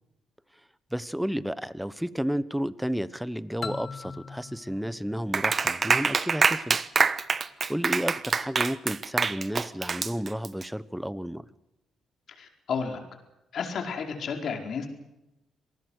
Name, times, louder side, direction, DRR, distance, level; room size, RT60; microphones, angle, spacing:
voice 1, 0.9-6.8 7.7-11.4, equal, 5° right, 16 dB, 1.0 m, -32 dB
sound 1, 3.6-6.3, left 5 dB, 35° left, 1.1 m, -41 dB
Clapping, 5.3-10.6, right 5 dB, 40° right, 1.1 m, -25 dB
voice 2, 12.4-13.0 13.5-14.9, left 6 dB, 60° left, 3 dB, 4.7 m, -32 dB
26.5 x 19.5 x 6.4 m, 0.92 s
cardioid pair, 90°, 0 cm